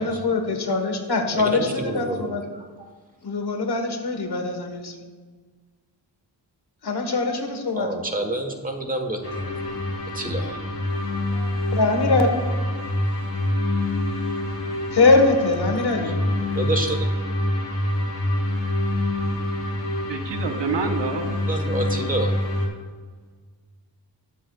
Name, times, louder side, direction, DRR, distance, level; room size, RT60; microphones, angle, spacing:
voice 1, 0.0-2.4 3.2-4.9 6.8-7.9 11.3-12.3 14.9-16.1, left 3 dB, 65° left, 4 dB, 1.4 m, -22 dB
voice 2, 1.3-2.9 7.8-9.2 10.1-10.6 16.0-16.1 16.5-17.1 21.5-22.3, right 2 dB, 20° right, 4 dB, 1.3 m, -28 dB
sound 1, 9.2-22.7, left 1 dB, 35° left, 2.9 m, -26 dB
voice 3, 20.1-21.4, right 4 dB, 85° right, 5 dB, 1.1 m, -27 dB
20.0 x 7.6 x 2.4 m, 1.5 s
wide cardioid pair, 135°, 42 cm